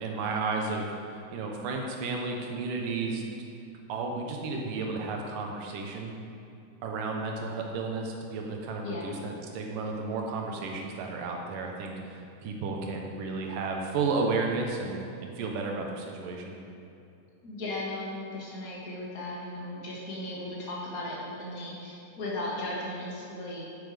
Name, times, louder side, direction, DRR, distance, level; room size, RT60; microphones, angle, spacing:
voice 1, 0.0-3.2 3.9-6.2 6.8-16.6, right 3 dB, 75° right, 1 dB, 2.7 m, -33 dB
voice 2, 17.4-23.6, left 1 dB, 30° left, -5 dB, 2.0 m, -36 dB
10.0 x 8.6 x 5.1 m, 2.6 s
omnidirectional pair, 3.9 m